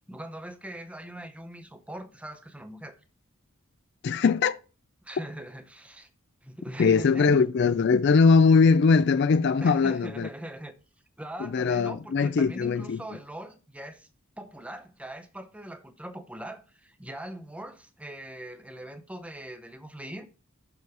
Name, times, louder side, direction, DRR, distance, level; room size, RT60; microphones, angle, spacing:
voice 1, 0.1-3.0 5.0-6.1 6.4-7.4 9.6-10.7 11.2-14.1 14.4-20.3, right 1 dB, 5° right, 0.7 m, -41 dB
voice 2, 4.0-4.6 6.8-10.3 11.4-13.0, left 5 dB, 50° left, 0.4 m, -21 dB
6.9 x 6.3 x 4.8 m
head